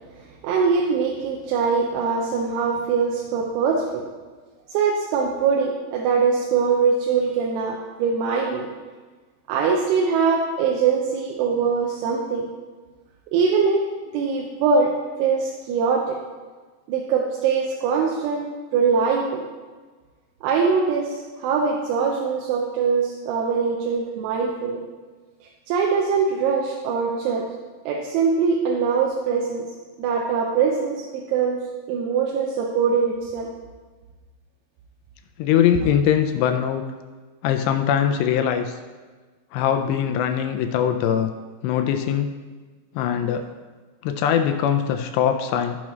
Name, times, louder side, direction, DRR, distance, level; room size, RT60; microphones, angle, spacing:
voice 1, 0.4-4.0 4.7-8.7 9.5-12.5 13.3-13.9 14.1-14.9 15.2-16.2 16.9-18.5 18.7-19.4 20.4-24.8 25.7-27.4 27.9-29.6 30.0-31.0 31.3-31.6 31.9-33.5, right 5 dB, 90° right, -1 dB, 3.2 m, -22 dB
voice 2, 35.4-36.8 37.4-38.8 39.5-41.3 41.6-42.3 43.0-43.5 44.0-45.8, left 9 dB, 85° left, 6 dB, 2.5 m, -21 dB
14.5 x 6.0 x 3.1 m, 1.4 s
omnidirectional pair, 5.3 m